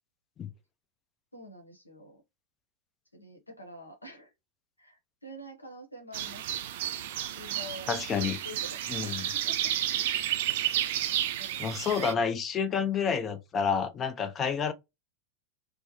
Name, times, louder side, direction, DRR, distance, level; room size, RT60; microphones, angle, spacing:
voice 1, 1.3-2.2 3.1-4.3 4.8-6.4 7.3-7.9 8.2-9.7 11.4-11.8, equal, 85° left, 0.8 m, -47 dB
sound 1, 6.1-12.1, right 12 dB, 50° right, 0.4 m, -31 dB
voice 2, 7.9-8.4 8.9-9.2 11.6-14.7, left 6 dB, 25° left, 0.5 m, -29 dB
3.1 x 2.0 x 2.8 m
figure-of-eight pair, 90°, 0 cm